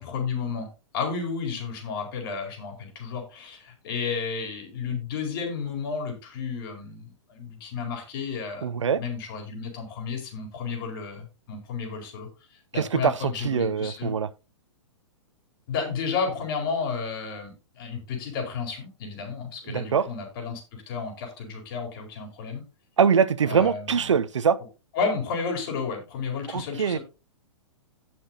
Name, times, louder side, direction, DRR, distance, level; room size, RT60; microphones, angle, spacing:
voice 1, 0.0-8.7 9.0-14.2 15.7-22.6 23.4-24.2 24.9-27.0, left 5 dB, 45° left, 4.3 m, -32 dB
voice 2, 8.6-9.0 12.7-13.1 13.4-14.3 19.7-20.1 23.0-24.6 26.5-27.0, right 7 dB, 70° right, 0.6 m, -23 dB
17.5 x 6.0 x 2.8 m
figure-of-eight pair, 110°, 16 cm